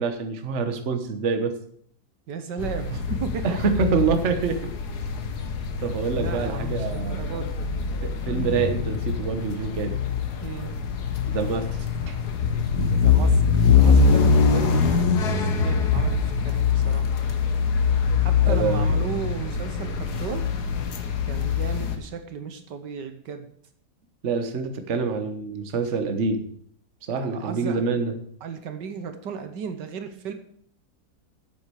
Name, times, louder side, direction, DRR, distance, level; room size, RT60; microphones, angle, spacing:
voice 1, 0.0-1.5 3.4-4.6 5.8-7.4 8.0-10.0 11.3-11.7 12.1-12.2 18.4-18.9 24.2-26.4 27.1-28.1, right 5 dB, 45° right, 8 dB, 1.3 m, -26 dB
voice 2, 2.3-3.4 6.1-7.6 10.4-10.8 13.0-17.1 18.2-20.5 21.3-23.5 27.2-27.8 28.4-30.3, right 6 dB, 75° right, 8 dB, 1.6 m, -35 dB
sound 1, 2.6-22.0, left 5 dB, 65° left, 1.6 m, -23 dB
8.8 x 7.8 x 6.8 m, 0.64 s
omnidirectional pair, 1.9 m